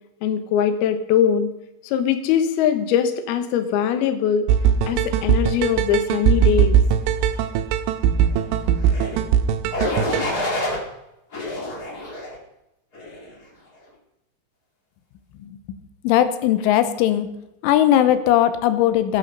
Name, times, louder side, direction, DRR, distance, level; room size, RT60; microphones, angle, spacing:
voice 1, 0.2-1.5 1.9-4.5 4.9-6.8, left 8 dB, 70° left, 8 dB, 2.6 m, -21 dB
sound 1, 4.5-10.3, right 8 dB, 85° right, 3.2 m, -20 dB
sound 2, 8.8-9.2 9.7-10.8 11.3-12.4 12.9-13.3, left 1 dB, 40° left, 1.3 m, -27 dB
voice 2, 16.0-17.3 17.6-19.2, left 11 dB, 90° left, 11 dB, 3.3 m, -18 dB
18.5 x 9.0 x 5.5 m, 0.88 s
omnidirectional pair, 5.5 m